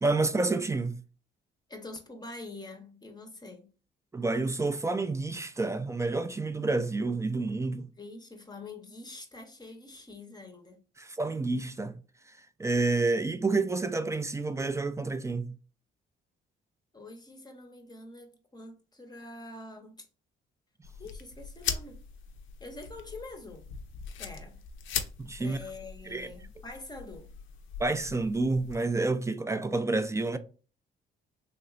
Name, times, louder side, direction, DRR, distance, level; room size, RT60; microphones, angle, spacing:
voice 1, 0.0-1.0 4.1-7.9 11.0-11.9 12.6-15.5 25.2-25.6 26.1-26.3 27.8-30.4, right 3 dB, 15° right, 0.3 m, -29 dB
voice 2, 1.7-3.7 8.0-10.8 16.9-20.1 21.0-22.0 22.6-23.6 24.2-24.6 25.4-27.3, left 2 dB, 20° left, 0.7 m, -45 dB
sound 1, 20.8-28.7, left 7 dB, 80° left, 0.5 m, -40 dB
3.2 x 2.9 x 2.4 m
cardioid pair, 90°, 20 cm